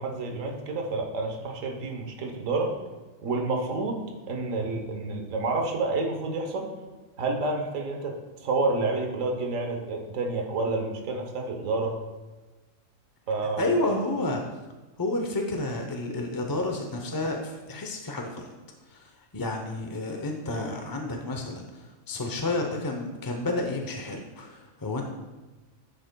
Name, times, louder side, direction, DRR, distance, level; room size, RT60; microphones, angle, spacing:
voice 1, 0.0-2.7 3.2-4.0 4.3-6.7 7.2-8.1 8.4-12.0 13.3-13.7, right 3 dB, 75° right, 2 dB, 1.4 m, -29 dB
voice 2, 13.6-14.4 15.0-18.5 18.9-21.8 22.1-25.0, left 2 dB, 25° left, 2 dB, 0.4 m, -30 dB
10.5 x 7.7 x 2.2 m, 1.2 s
omnidirectional pair, 1.4 m